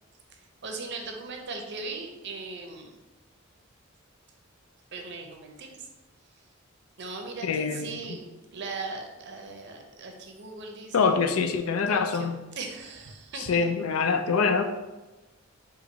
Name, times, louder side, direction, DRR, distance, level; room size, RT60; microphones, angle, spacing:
voice 1, 0.6-2.9 4.9-5.9 7.0-11.2 11.9-12.3 12.6-13.7, right 3 dB, 55° right, 3 dB, 0.5 m, -39 dB
voice 2, 7.4-8.2 10.9-12.4 13.4-14.6, left 5 dB, 85° left, 8 dB, 0.4 m, -25 dB
4.5 x 2.5 x 3.8 m, 1.1 s
head